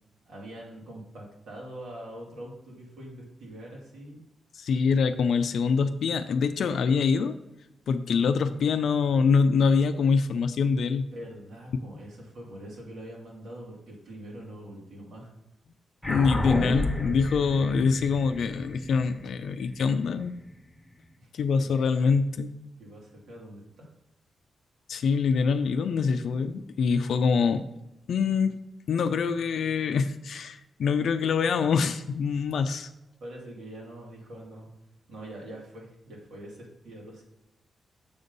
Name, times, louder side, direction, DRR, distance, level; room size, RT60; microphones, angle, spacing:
voice 1, 0.2-4.2 11.0-15.3 21.2-21.3 21.6-21.7 22.8-23.9 33.2-34.7 35.1-37.2, right 1 dB, 85° right, -3 dB, 2.4 m, -43 dB
voice 2, 4.5-7.4 7.9-11.1 16.1-20.3 21.3-22.5 24.9-27.6 28.1-28.6 28.9-32.9, left 5 dB, 75° left, 8 dB, 0.4 m, -25 dB
sound 1, 16.0-20.8, left 1 dB, 5° left, 1.3 m, -32 dB
6.9 x 5.3 x 3.9 m, 0.93 s
wide cardioid pair, 125°, 0 cm